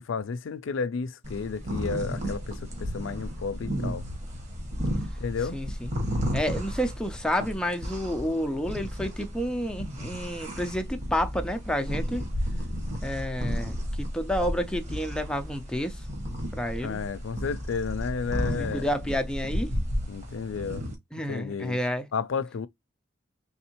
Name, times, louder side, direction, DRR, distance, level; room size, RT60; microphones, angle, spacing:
voice 1, 0.0-4.0 5.2-5.6 16.8-18.9 20.1-20.8 21.3-21.8 22.1-22.7, left 5 dB, 90° left, 0.4 m, -32 dB
sound 1, 1.2-20.9, equal, 35° right, 1.3 m, -33 dB
voice 2, 5.5-5.9 6.3-12.3 13.0-16.0 16.5-17.0 18.5-19.7 21.1-22.1, equal, 5° left, 0.4 m, -30 dB
3.5 x 3.2 x 2.9 m
head